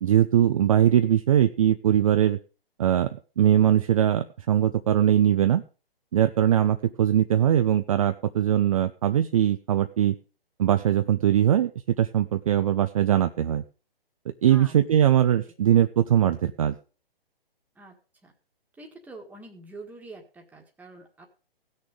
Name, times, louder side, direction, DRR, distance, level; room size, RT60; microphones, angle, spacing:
voice 1, 0.0-2.4 2.8-5.6 6.1-10.2 10.6-13.6 14.4-16.7, right 10 dB, 35° right, 10 dB, 0.5 m, -21 dB
voice 2, 18.8-21.3, right 2 dB, 5° right, 1 dB, 1.6 m, -46 dB
16.5 x 6.4 x 5.1 m, 0.35 s
figure-of-eight pair, 135°, 30 cm